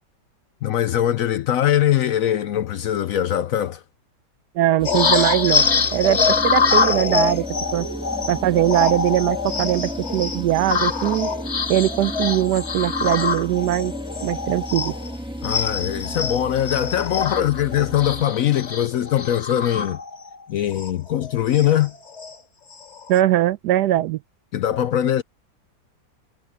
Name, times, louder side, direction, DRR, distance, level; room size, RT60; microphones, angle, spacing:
voice 1, 0.6-3.8 15.4-20.0 20.5-21.9 24.5-25.2, left 11 dB, 65° left, 0.9 m, -21 dB
voice 2, 4.5-7.4 7.7-7.9 8.3-11.3 11.7-13.9 14.2-15.0 23.1-24.2, right 13 dB, 75° right, 1.1 m, -21 dB
sound 1, 4.8-15.1 15.4-20.3 20.7-20.9 21.2-22.3 22.7-23.2, left 5 dB, 40° left, 1.9 m, -24 dB
sound 2, 4.8-18.3, equal, 5° right, 1.8 m, -34 dB
omnidirectional pair, 1.9 m